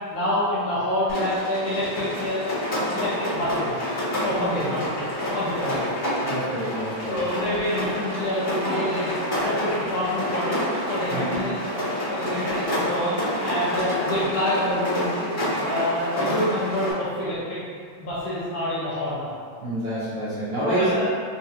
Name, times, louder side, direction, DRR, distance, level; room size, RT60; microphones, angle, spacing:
voice 1, 0.1-2.4 2.9-3.8 4.2-5.9 7.1-10.6 10.9-11.6 12.1-15.3 15.6-17.6 18.0-19.4 20.6-21.0, left 1 dB, 70° left, -11 dB, 1.6 m, -27 dB
Rain, 1.1-16.9, left 1 dB, 35° left, 0.8 m, -28 dB
voice 2, 4.3-4.7 5.6-5.7 6.2-7.3 11.1-11.4 19.6-20.9, right 1 dB, 65° right, -14 dB, 1.5 m, -28 dB
4.8 x 2.3 x 2.7 m, 2.1 s
omnidirectional pair, 3.5 m